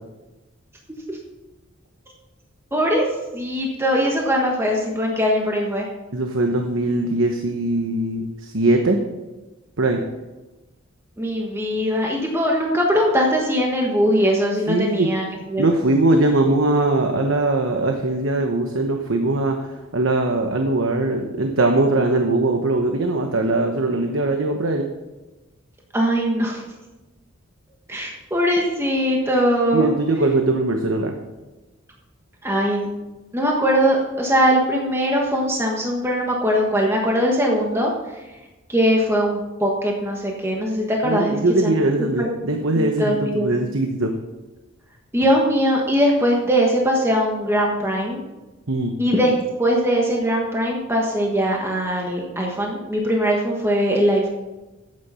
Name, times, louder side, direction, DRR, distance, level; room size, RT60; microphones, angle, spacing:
voice 1, 2.7-3.1 3.3-5.9 11.2-15.6 25.9-26.6 27.9-29.9 32.4-32.9 33.3-37.9 38.7-41.7 42.7-43.7 45.1-48.2 49.0-49.3 49.6-54.3, equal, 10° right, -1 dB, 1.3 m, -21 dB
voice 2, 6.1-9.0 9.8-10.0 14.7-15.1 15.6-19.6 19.9-24.9 29.7-31.1 41.0-44.1 48.7-48.9, right 2 dB, 75° right, 4 dB, 1.1 m, -21 dB
12.0 x 8.7 x 5.6 m, 1.1 s
head